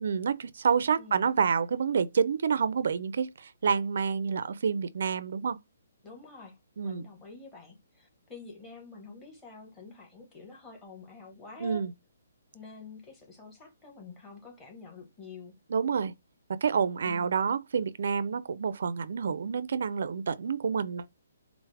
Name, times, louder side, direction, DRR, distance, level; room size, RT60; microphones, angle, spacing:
voice 1, 0.0-5.6 6.8-7.1 11.6-11.9 15.7-16.1 16.6-21.1, right 6 dB, 65° right, 0.4 m, -28 dB
voice 2, 6.0-11.8 12.5-15.5 17.0-17.3, left 4 dB, 10° left, 1.2 m, -48 dB
4.7 x 2.0 x 3.2 m
hypercardioid pair, 160°, 0 cm